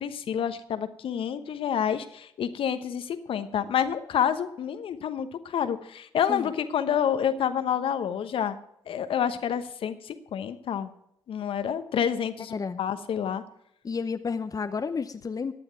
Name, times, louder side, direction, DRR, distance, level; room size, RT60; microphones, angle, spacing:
voice 1, 0.0-8.6 8.9-10.9 11.3-13.4, left 8 dB, 60° left, 10 dB, 1.0 m, -28 dB
voice 2, 12.5-12.8 13.8-15.5, left 5 dB, 35° left, 9 dB, 0.8 m, -31 dB
15.5 x 9.9 x 4.6 m, 0.74 s
hypercardioid pair, 45°, 11 cm